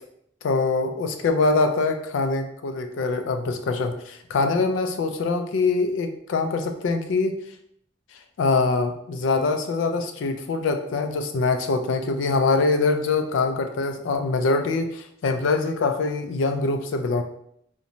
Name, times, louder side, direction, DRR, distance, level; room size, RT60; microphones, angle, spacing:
voice 1, 0.4-7.4 8.4-17.2, left 3 dB, 80° left, 6 dB, 0.3 m, -24 dB
2.5 x 2.1 x 2.9 m, 0.70 s
head